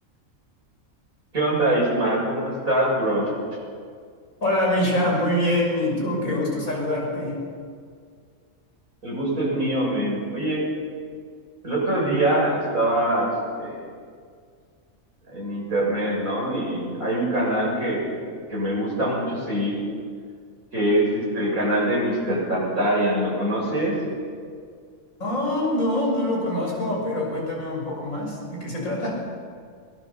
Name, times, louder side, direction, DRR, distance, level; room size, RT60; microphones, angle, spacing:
voice 1, 1.3-3.3 9.0-10.6 11.6-13.3 13.6-13.8 15.3-18.1 18.5-19.8 20.7-24.0, right 1 dB, 90° right, -3 dB, 7.4 m, -23 dB
voice 2, 4.4-7.4 25.2-29.2, left 1 dB, 75° left, -2 dB, 6.7 m, -24 dB
23.0 x 19.5 x 7.0 m, 2.1 s
omnidirectional pair, 1.4 m